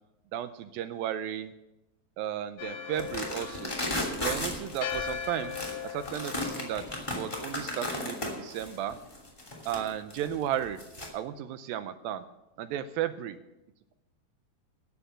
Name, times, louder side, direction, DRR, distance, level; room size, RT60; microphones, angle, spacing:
voice 1, 0.3-1.5 2.2-3.8 4.2-5.6 5.8-6.9 7.1-9.0 9.7-10.8 11.1-12.2 12.6-13.4, right 10 dB, 80° right, 11 dB, 2.2 m, -34 dB
Church bell, 2.6-8.3, left 8 dB, 75° left, 3.1 m, -40 dB
sound 1, 2.9-11.1, left 1 dB, 10° left, 2.1 m, -35 dB
13.5 x 8.8 x 7.4 m, 0.94 s
omnidirectional pair, 4.5 m